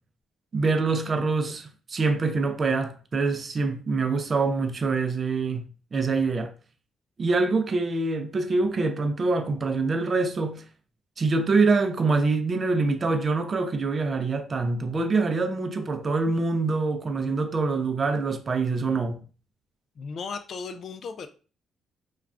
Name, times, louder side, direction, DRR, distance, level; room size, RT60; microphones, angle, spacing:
voice 1, 0.5-6.5 7.2-10.6 11.2-19.2, right 3 dB, 40° right, 0.5 m, -25 dB
voice 2, 20.0-21.3, left 5 dB, 55° left, 0.4 m, -36 dB
2.4 x 2.3 x 3.3 m
cardioid pair, 90°, 0 cm